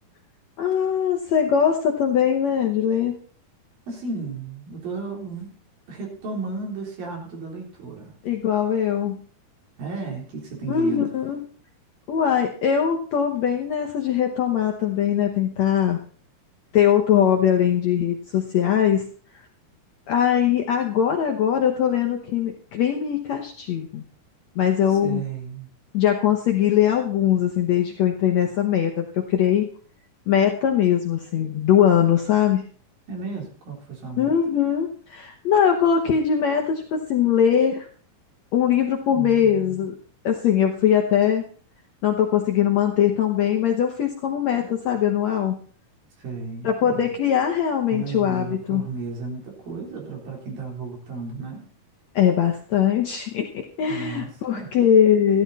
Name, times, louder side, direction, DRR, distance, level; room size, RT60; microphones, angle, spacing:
voice 1, 0.6-3.2 8.2-9.2 10.7-11.4 12.1-16.0 16.7-19.1 20.1-24.0 24.6-25.2 25.9-29.7 30.3-32.7 34.2-37.9 38.5-40.0 40.2-41.5 42.0-45.6 46.6-48.9 52.1-55.4, left 9 dB, 65° left, 3 dB, 1.8 m, -21 dB
voice 2, 3.9-5.5 5.9-8.1 9.8-11.1 24.9-25.7 33.1-34.3 39.1-39.8 46.2-47.1 47.9-51.6 53.9-54.7, right 4 dB, 70° right, 0 dB, 5.3 m, -34 dB
13.5 x 12.0 x 4.1 m, 0.43 s
omnidirectional pair, 4.3 m